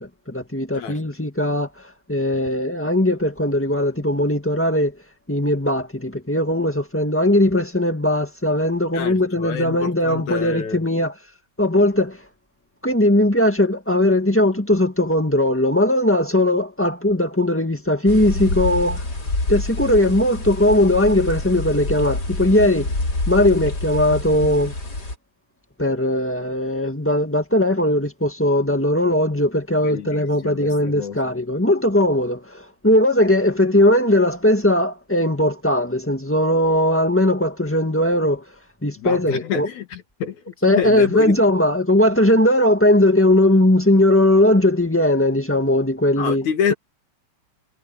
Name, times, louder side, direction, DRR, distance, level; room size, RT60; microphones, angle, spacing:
voice 1, 0.0-4.9 5.3-11.2 11.6-12.2 12.8-19.1 19.5-22.9 23.3-24.7 25.8-38.4 38.8-39.7 40.6-46.7, left 1 dB, 10° left, 0.6 m, -19 dB
voice 2, 8.9-10.8 29.8-31.2 39.0-41.4 46.2-46.7, left 7 dB, 65° left, 2.8 m, -27 dB
sound 1, 18.1-25.1, left 2 dB, 30° left, 4.4 m, -27 dB
omnidirectional pair, 3.8 m